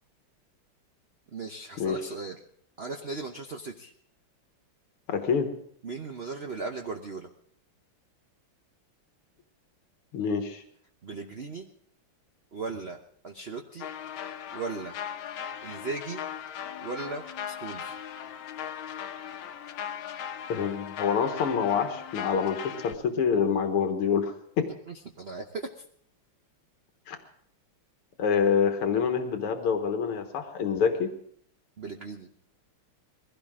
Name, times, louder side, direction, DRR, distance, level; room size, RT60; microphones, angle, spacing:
voice 1, 1.3-2.4 2.8-3.9 5.8-7.3 11.0-11.7 12.5-13.0 13.2-13.9 14.5-15.0 15.6-16.2 16.8-18.0 24.9-25.8 31.8-32.3, right 4 dB, 50° right, 3 dB, 0.7 m, -37 dB
voice 2, 5.1-5.5 10.1-10.6 20.5-24.7 27.1-27.2 28.2-31.1, left 6 dB, 85° left, 6 dB, 2.3 m, -26 dB
sound 1, 13.8-23.0, left 9 dB, 70° left, 1.7 m, -38 dB
21.5 x 16.5 x 3.7 m, 0.64 s
omnidirectional pair, 2.4 m